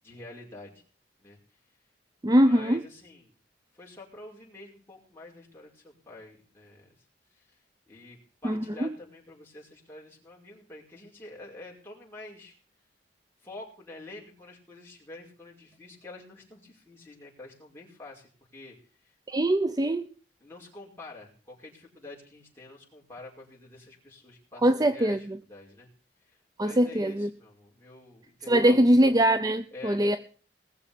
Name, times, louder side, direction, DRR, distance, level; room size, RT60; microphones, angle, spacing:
voice 1, 0.0-0.8 1.2-1.4 2.3-3.3 3.7-7.0 7.3-12.6 13.4-19.1 20.4-25.9 26.2-28.9 29.7-30.2, left 2 dB, 15° left, -4 dB, 5.4 m, -47 dB
voice 2, 2.2-2.8 8.4-8.9 19.3-20.1 24.6-25.2 26.6-27.3 28.5-30.2, right 1 dB, 20° right, 11 dB, 0.6 m, -22 dB
20.0 x 7.1 x 7.0 m, 0.41 s
head